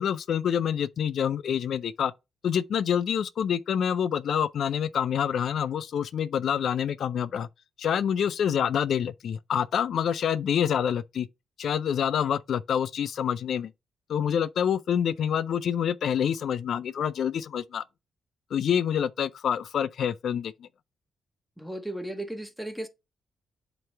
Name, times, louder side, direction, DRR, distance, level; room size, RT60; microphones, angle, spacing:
voice 1, 0.0-2.1 2.4-7.5 7.8-11.3 11.6-13.7 14.1-17.8 18.5-20.7, left 8 dB, 70° left, 0.3 m, -27 dB
voice 2, 21.6-22.9, right 1 dB, ahead, 1.2 m, -35 dB
7.7 x 3.0 x 4.5 m
cardioid pair, 70°, 0 cm